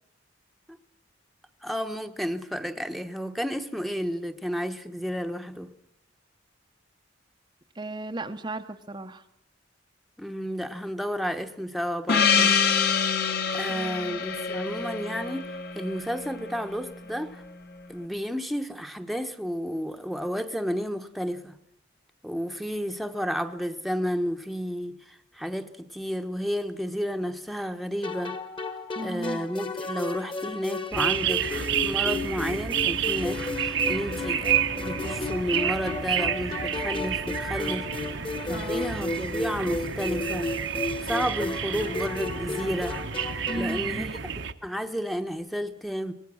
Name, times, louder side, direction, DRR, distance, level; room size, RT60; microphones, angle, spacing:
voice 1, 1.6-5.7 10.2-12.6 13.5-17.4 17.9-21.6 22.2-28.4 29.0-38.1 38.5-40.5 41.0-43.0 43.5-46.1, equal, ahead, 1.0 m, -32 dB
voice 2, 7.7-9.2 13.7-14.2 28.9-29.5 38.5-39.0 43.5-44.1, right 2 dB, 20° right, 0.7 m, -36 dB
Gong, 12.1-16.9, left 6 dB, 50° left, 1.6 m, -26 dB
sound 1, 28.0-44.0, left 3 dB, 25° left, 1.5 m, -34 dB
sound 2, 30.9-44.5, right 8 dB, 65° right, 1.0 m, -30 dB
24.5 x 19.0 x 6.3 m
head